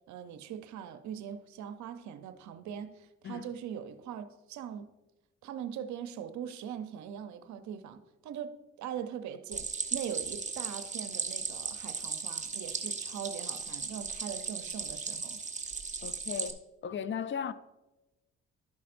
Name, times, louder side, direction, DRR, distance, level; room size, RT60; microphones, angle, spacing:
voice 1, 0.1-4.9 5.4-15.4, right 8 dB, 75° right, 0.7 m, -41 dB
Stream, 9.5-16.5, right 4 dB, 25° right, 1.0 m, -37 dB
voice 2, 16.0-17.5, left 7 dB, 40° left, 0.5 m, -37 dB
12.5 x 5.5 x 2.5 m
supercardioid pair, 55°, 29 cm